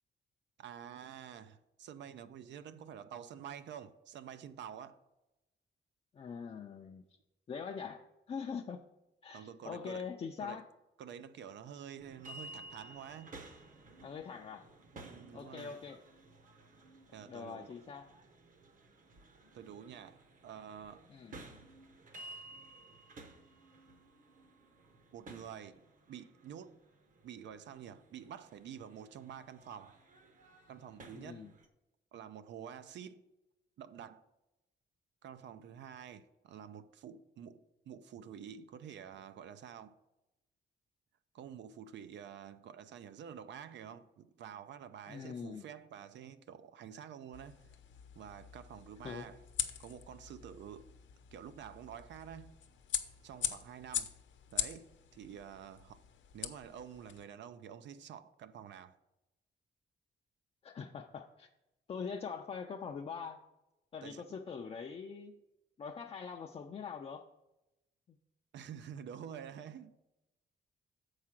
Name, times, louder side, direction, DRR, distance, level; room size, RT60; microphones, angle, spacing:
voice 1, 0.6-5.0 9.3-10.1 10.4-10.6 11.0-13.3 15.0-15.8 17.1-17.7 19.5-21.1 25.1-25.8 26.1-26.8 27.2-30.0 30.7-31.5 32.1-33.2 33.8-34.3 35.2-37.6 37.9-40.0 41.3-47.7 48.2-49.4 49.8-50.9 51.3-52.6 53.2-54.1 54.5-56.0 56.3-59.0 64.0-64.2 68.5-69.9, right 8 dB, 75° right, 0.4 m, -49 dB
voice 2, 6.1-7.0 7.5-8.8 9.2-10.7 14.0-14.7 15.3-16.0 17.3-18.1 21.1-21.4 31.1-31.5 45.1-45.7 49.0-49.3 60.6-61.5 61.9-63.4 63.9-65.4 65.8-67.3 68.1-68.2, left 6 dB, 30° left, 0.4 m, -43 dB
sound 1, 12.0-31.7, right 2 dB, 45° right, 0.9 m, -55 dB
sound 2, 47.3-57.2, left 10 dB, 85° left, 0.7 m, -42 dB
7.3 x 4.9 x 5.9 m
wide cardioid pair, 155°, 19 cm